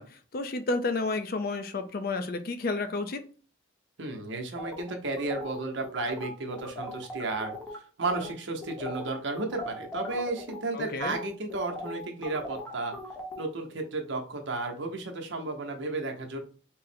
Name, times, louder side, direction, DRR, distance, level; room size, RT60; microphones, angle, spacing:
voice 1, 0.0-3.2 10.7-11.2, left 3 dB, 50° left, 9 dB, 0.4 m, -31 dB
voice 2, 4.0-12.9 13.4-16.4, right 3 dB, 65° right, 3 dB, 0.7 m, -33 dB
sound 1, 4.6-7.8 8.1-8.3 8.6-13.4, left 1 dB, 5° left, 0.7 m, -39 dB
3.7 x 2.0 x 4.2 m, 0.40 s
head